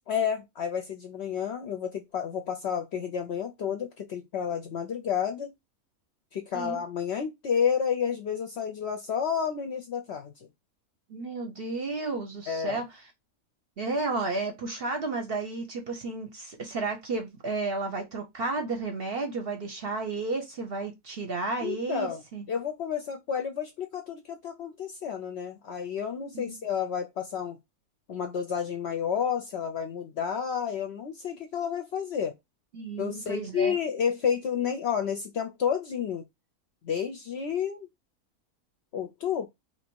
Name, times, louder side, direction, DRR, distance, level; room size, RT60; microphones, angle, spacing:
voice 1, 0.1-5.5 6.3-10.5 12.5-12.8 21.6-22.2 22.5-27.6 28.1-32.3 33.0-36.2 36.8-37.9 38.9-39.5, left 7 dB, 65° left, 0.7 m, -30 dB
voice 2, 11.1-12.8 13.8-22.5 26.3-26.6 32.7-33.8, right 3 dB, 50° right, 0.8 m, -32 dB
2.9 x 2.7 x 4.4 m
omnidirectional pair, 1.5 m